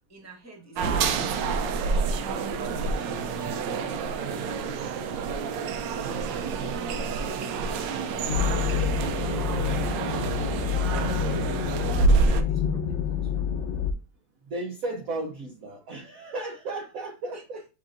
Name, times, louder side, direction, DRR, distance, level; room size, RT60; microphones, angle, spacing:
voice 1, 0.1-8.7 9.0-13.5 17.3-17.7, right 1 dB, 10° right, 0 dB, 1.2 m, -47 dB
sound 1, 0.8-12.4, right 5 dB, 75° right, 1.2 m, -28 dB
sound 2, 8.3-13.9, left 8 dB, 75° left, 1.2 m, -27 dB
voice 2, 14.5-17.6, right 2 dB, 60° right, 3 dB, 0.9 m, -34 dB
6.9 x 2.9 x 2.5 m, 0.31 s
omnidirectional pair, 2.0 m